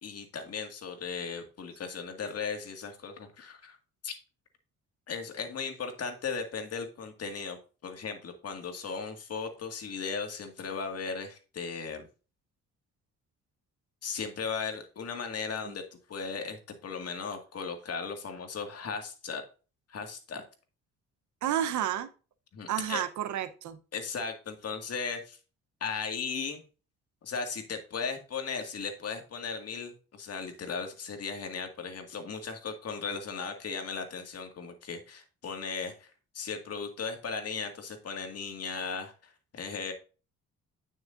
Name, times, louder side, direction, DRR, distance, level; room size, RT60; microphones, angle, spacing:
voice 1, 0.0-3.8 4.0-4.1 5.1-12.1 14.0-15.8 16.1-19.4 19.9-20.4 22.5-23.0 23.9-25.4 25.8-26.6 27.2-39.9, left 5 dB, 55° left, 5 dB, 2.0 m, -37 dB
voice 2, 21.4-22.1 22.7-23.8, right 10 dB, 75° right, 11 dB, 0.9 m, -30 dB
9.2 x 6.4 x 2.6 m, 0.34 s
cardioid pair, 90°, 30 cm